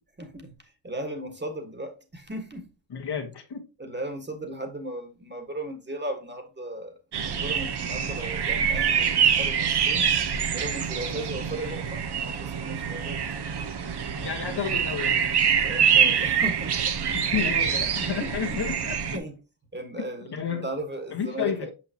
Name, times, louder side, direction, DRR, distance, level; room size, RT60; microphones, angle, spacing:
voice 1, 0.2-2.7 3.8-7.0 7.2-10.1 10.5-13.2 15.6-18.6 19.1-19.3 19.7-21.7, right 1 dB, 20° right, 1.6 m, -37 dB
voice 2, 2.9-3.6 14.2-15.2 16.0-16.1 17.1-19.2 20.0-20.1 20.3-20.7 21.1-21.7, left 7 dB, 50° left, 1.5 m, -31 dB
sound 1, 7.1-19.2, right 7 dB, 55° right, 1.0 m, -25 dB
5.8 x 5.7 x 2.9 m
cardioid pair, 70°, 49 cm